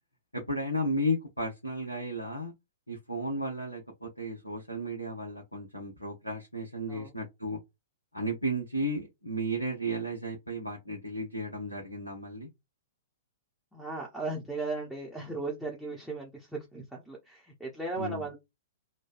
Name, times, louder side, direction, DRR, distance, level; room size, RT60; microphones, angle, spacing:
voice 1, 0.3-2.5 2.9-7.6 8.1-12.5 18.0-18.3, equal, 90° left, 0.8 m, -34 dB
voice 2, 13.7-18.4, right 3 dB, ahead, 0.8 m, -37 dB
3.2 x 2.2 x 2.5 m
figure-of-eight pair, 110°, 0 cm